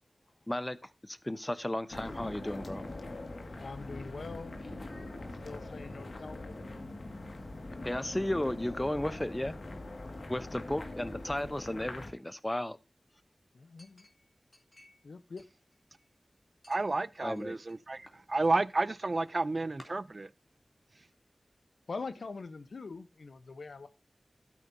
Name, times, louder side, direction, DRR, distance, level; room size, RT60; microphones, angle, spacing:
voice 1, 0.5-2.8 7.8-9.6 10.3-12.8 17.2-17.6, left 1 dB, 20° left, 0.8 m, -34 dB
sound 1, 1.9-12.1, left 2 dB, 70° left, 1.9 m, -43 dB
voice 2, 3.6-4.5 5.4-6.7 13.5-14.0 15.0-15.4 21.9-23.9, left 4 dB, 90° left, 0.9 m, -43 dB
Chink clink, 13.8-15.1 15.4-16.2 16.6-17.8 18.1-18.6 19.3-19.4 19.8-19.9, left 1 dB, 40° left, 3.0 m, -57 dB
voice 3, 16.7-20.3, right 2 dB, 50° right, 0.5 m, -31 dB
13.5 x 8.5 x 2.7 m
wide cardioid pair, 55°, 0 cm